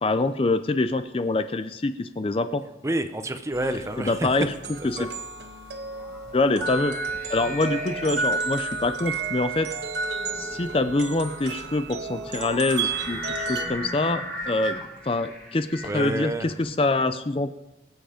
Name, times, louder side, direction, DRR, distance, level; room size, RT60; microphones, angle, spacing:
voice 1, 0.0-2.6 4.0-4.5 4.8-5.1 6.3-6.9 7.3-9.7 10.3-14.8 15.0-17.5, left 2 dB, 30° left, 10 dB, 0.5 m, -25 dB
voice 2, 2.8-4.3 5.0-5.1 15.8-16.5, right 1 dB, 15° right, 9 dB, 0.7 m, -28 dB
sound 1, 3.5-13.7, right 4 dB, 70° right, 1.3 m, -32 dB
sound 2, 5.4-16.9, equal, 5° left, 2.3 m, -38 dB
23.0 x 7.9 x 5.1 m, 0.98 s
head